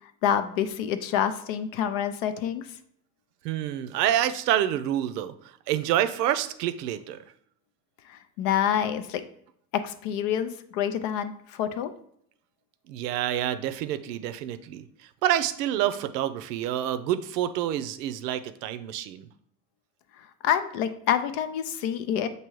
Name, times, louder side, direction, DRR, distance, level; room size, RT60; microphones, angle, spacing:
voice 1, 0.2-2.7 8.1-9.2 9.7-11.9 20.2-22.3, left 9 dB, 55° left, 10 dB, 0.6 m, -27 dB
voice 2, 3.4-7.2 12.9-19.3, right 11 dB, 75° right, 11 dB, 0.5 m, -28 dB
6.1 x 2.8 x 3.0 m, 0.68 s
hypercardioid pair, 75°, 48 cm